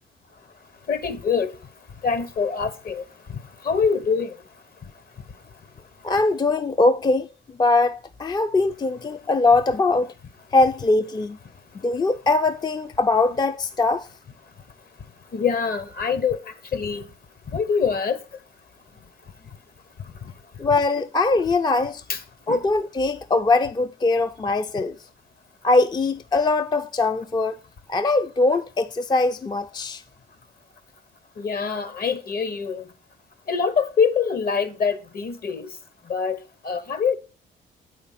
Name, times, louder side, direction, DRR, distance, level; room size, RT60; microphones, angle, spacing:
voice 1, 0.9-1.5 2.0-4.4 15.3-17.1 17.5-18.2 20.2-20.3 22.1-22.2 22.5-22.6 31.4-32.9 33.5-35.8 36.0-37.1, left 6 dB, 50° left, 1.1 m, -25 dB
voice 2, 6.0-7.3 7.6-10.1 10.5-11.4 11.8-14.1 20.6-22.0 22.5-25.0 25.6-27.6 27.9-30.0, left 3 dB, 20° left, 0.4 m, -21 dB
8.4 x 5.0 x 5.7 m
cardioid pair, 90°, 20 cm